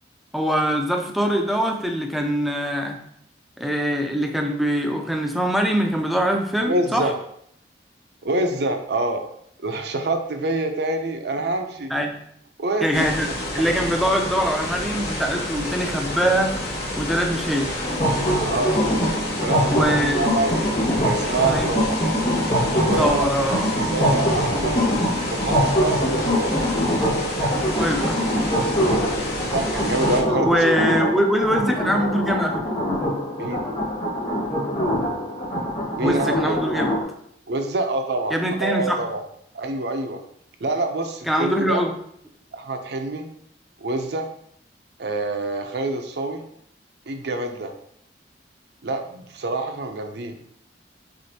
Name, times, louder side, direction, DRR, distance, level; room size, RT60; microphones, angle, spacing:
voice 1, 0.3-3.0 3.6-7.1 11.9-12.2 12.8-13.3 13.5-16.6 17.0-17.7 19.7-20.2 21.4-21.7 23.0-23.7 27.7-28.3 30.4-32.7 36.0-36.9 38.3-39.1 41.3-41.9, equal, ahead, 2 dB, 0.5 m, -23 dB
voice 2, 6.7-7.2 8.2-9.2 9.6-11.9 12.6-13.1 18.5-18.8 19.4-19.8 20.1-20.7 21.0-22.0 22.9-23.3 23.8-24.8 25.3-26.7 29.5-31.2 33.4-33.7 36.0-36.7 37.5-39.3 39.5-40.2 40.6-41.8 42.5-43.3 43.8-44.3 45.0-46.4 47.1-47.7 48.8-50.4, right 2 dB, 65° right, 5 dB, 0.6 m, -26 dB
sound 1, 12.9-30.2, left 1 dB, 60° left, 0.9 m, -29 dB
sound 2, 17.8-37.0, equal, 40° left, 1.4 m, -23 dB
6.2 x 2.5 x 2.8 m, 0.70 s
head